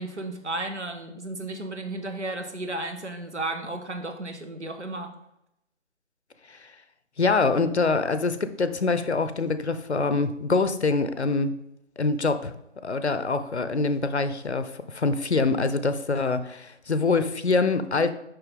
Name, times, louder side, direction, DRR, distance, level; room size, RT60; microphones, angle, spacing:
voice 1, 0.0-5.1, right 2 dB, 70° right, 6 dB, 1.3 m, -33 dB
voice 2, 7.2-11.5 12.0-12.5 12.8-18.1, left 3 dB, 65° left, 11 dB, 0.7 m, -25 dB
6.8 x 5.7 x 3.6 m, 0.82 s
figure-of-eight pair, 160°, 36 cm